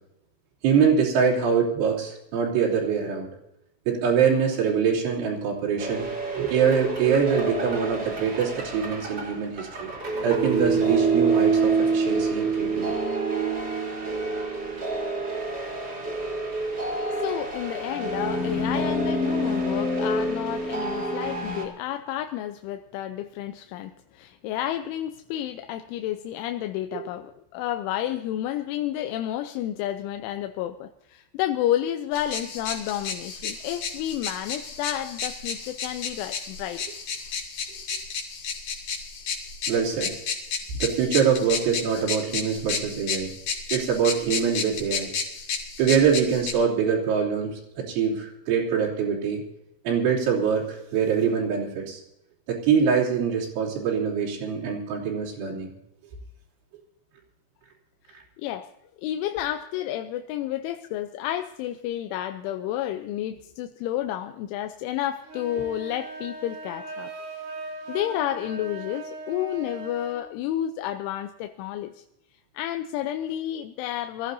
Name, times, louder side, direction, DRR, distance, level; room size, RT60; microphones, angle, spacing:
voice 1, 0.6-3.3 3.9-6.1 6.3-9.9 10.2-12.9 26.9-27.0 39.7-40.2 40.8-43.3 43.7-45.1 45.8-49.4 49.9-52.0 52.5-55.7, right 7 dB, 70° right, -3 dB, 5.5 m, -24 dB
sound 1, 5.8-21.6, right 3 dB, 25° right, 3.0 m, -27 dB
voice 2, 16.9-36.8 58.4-58.7 59.0-67.1 67.9-72.0 72.5-74.3, left 12 dB, 80° left, 7 dB, 3.0 m, -31 dB
sound 2, 32.1-46.5, left 6 dB, 50° left, 3.7 m, -32 dB
sound 3, 65.2-70.2, right 3 dB, 90° right, 6.0 m, -39 dB
25.0 x 15.0 x 2.7 m, 0.85 s
omnidirectional pair, 5.8 m